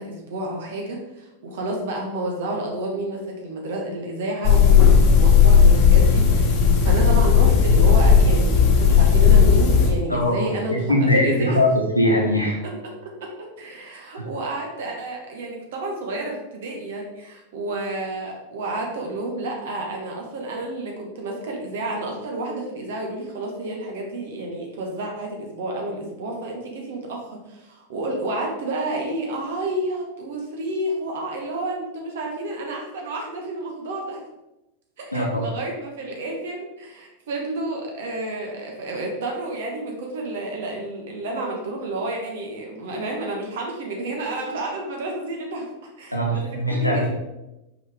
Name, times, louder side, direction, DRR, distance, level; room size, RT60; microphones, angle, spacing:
voice 1, 0.0-11.6 13.0-34.2 35.0-45.7 46.0-46.4 46.7-47.1, right 2 dB, 55° right, 0 dB, 1.2 m, -30 dB
sound 1, 4.4-9.9, left 6 dB, 40° left, 1.1 m, -14 dB
voice 2, 10.1-11.7 11.9-12.6 14.2-14.3 35.1-35.5 46.1-47.1, left 1 dB, 85° left, -1 dB, 1.4 m, -21 dB
6.1 x 5.2 x 3.6 m, 0.97 s
figure-of-eight pair, 90°, 0 cm